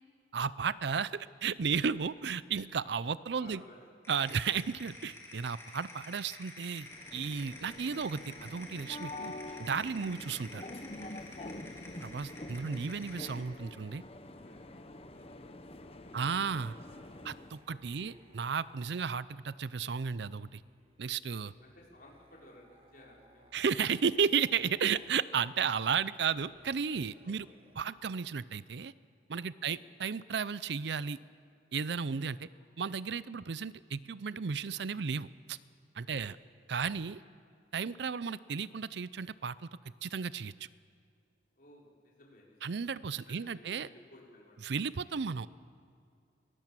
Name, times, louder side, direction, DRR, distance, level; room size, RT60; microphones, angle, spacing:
voice 1, 0.3-3.6 4.1-6.9 7.1-9.3 9.6-10.6 12.0-14.0 16.1-16.8 17.2-20.6 21.0-21.5 23.5-27.5 27.8-28.9 29.3-31.2 31.7-32.5 32.8-35.6 36.0-36.4 36.7-37.2 37.7-39.6 40.0-40.5 42.6-43.9 44.6-45.5, right 6 dB, 65° right, 17 dB, 0.5 m, -33 dB
voice 2, 3.4-3.9 4.6-4.8 11.4-11.7 14.2-16.3 17.7-18.1 21.4-23.6 27.2-27.6 29.6-29.8 32.5-32.6 36.1-36.2 41.6-42.8 43.3-44.6, left 1 dB, 50° left, -3 dB, 5.6 m, -58 dB
sound 1, 4.0-13.4, left 2 dB, 15° left, 3.4 m, -50 dB
sound 2, 6.8-17.6, left 2 dB, 30° left, 1.0 m, -46 dB
sound 3, 11.3-19.2 20.2-25.2 26.3-27.8, right 1 dB, 30° right, 1.5 m, -65 dB
24.5 x 19.5 x 7.5 m, 2.4 s
head